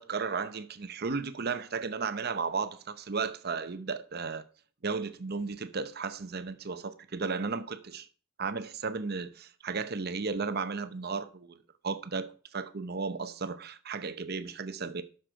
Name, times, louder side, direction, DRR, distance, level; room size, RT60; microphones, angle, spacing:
voice 1, 0.0-4.4 4.8-8.1 8.4-11.6 11.8-15.0, right 4 dB, 55° right, 0.8 m, -34 dB
11.5 x 6.7 x 4.5 m
head